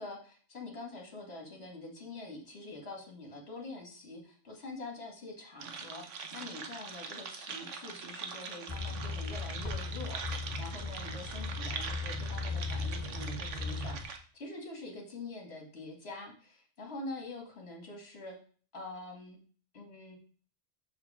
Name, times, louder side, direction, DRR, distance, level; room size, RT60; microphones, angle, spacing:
voice 1, 0.0-18.4 18.7-19.4 19.7-20.2, left 2 dB, 60° left, 1 dB, 2.2 m, -45 dB
sound 1, 5.6-14.2, right 5 dB, 80° right, 1.3 m, -43 dB
sound 2, 8.7-14.0, left 3 dB, 35° left, 1.5 m, -37 dB
6.5 x 5.1 x 4.8 m, 0.43 s
omnidirectional pair, 1.3 m